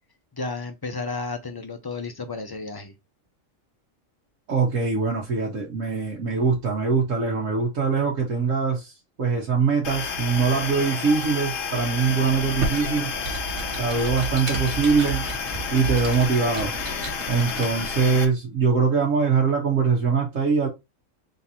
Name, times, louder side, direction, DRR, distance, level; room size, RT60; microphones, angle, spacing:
voice 1, 0.3-2.9, left 3 dB, 25° left, 0.5 m, -32 dB
voice 2, 4.5-13.1 13.8-15.2 15.7-16.7 17.3-20.7, right 5 dB, 75° right, 1.5 m, -23 dB
sound 1, 9.8-18.2, left 6 dB, 75° left, 1.2 m, -31 dB
Computer keyboard, 12.3-18.1, right 3 dB, 60° right, 1.5 m, -33 dB
3.8 x 2.7 x 4.2 m
omnidirectional pair, 1.4 m